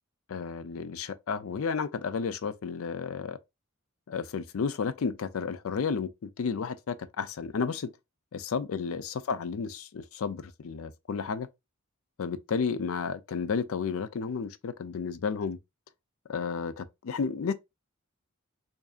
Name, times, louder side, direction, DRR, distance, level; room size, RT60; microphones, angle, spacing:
voice 1, 0.3-3.4 4.1-7.9 8.3-11.5 12.2-15.6 16.3-17.5, left 5 dB, 70° left, 0.4 m, -32 dB
4.8 x 2.6 x 2.4 m
head